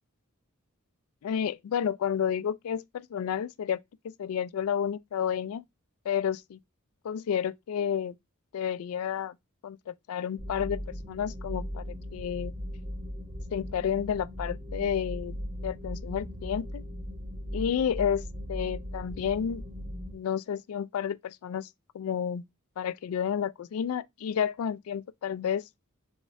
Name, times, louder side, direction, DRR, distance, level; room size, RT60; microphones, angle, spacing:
voice 1, 1.2-5.6 6.1-6.6 7.0-8.2 8.5-9.3 9.6-11.8 12.1-12.5 13.5-15.4 15.6-16.8 17.5-18.2 18.5-19.6 20.1-21.7 21.9-22.4 22.8-25.6, left 8 dB, 70° left, 0.3 m, -31 dB
sound 1, 10.4-20.1, equal, 30° right, 0.7 m, -38 dB
3.6 x 3.2 x 4.0 m
head